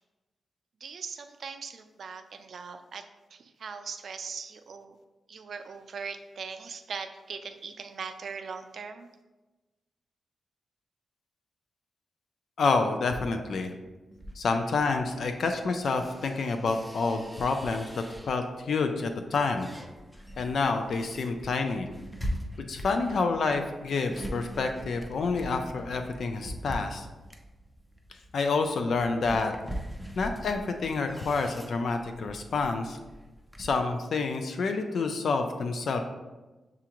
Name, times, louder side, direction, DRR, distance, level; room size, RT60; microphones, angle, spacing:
voice 1, 0.8-5.0 5.3-9.1, right 5 dB, 65° right, 7 dB, 0.4 m, -40 dB
voice 2, 12.6-13.7 14.4-19.7 20.4-21.9 22.7-27.1 28.3-29.5 30.2-33.0 33.6-36.0, left 4 dB, 70° left, 6 dB, 0.3 m, -28 dB
sound 1, 14.1-18.6 19.1-33.8, equal, 5° left, 0.5 m, -42 dB
6.7 x 2.4 x 2.9 m, 1.1 s
wide cardioid pair, 100°, 0 cm